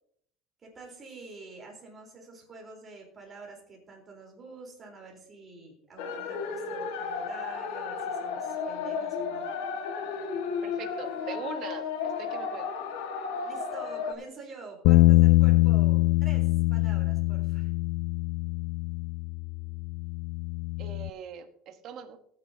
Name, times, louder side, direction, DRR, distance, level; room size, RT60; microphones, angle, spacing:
voice 1, 0.6-9.5 13.4-17.7, right 3 dB, 20° right, 0 dB, 4.0 m, -47 dB
sound 1, 6.0-14.1, left 5 dB, 85° left, 1.8 m, -33 dB
voice 2, 10.6-12.7 20.8-22.2, right 7 dB, 45° right, 6 dB, 1.3 m, -41 dB
Bass guitar, 14.8-21.1, left 20 dB, 60° left, 0.3 m, -23 dB
19.5 x 9.3 x 2.8 m, 0.65 s
cardioid pair, 160°, 0 cm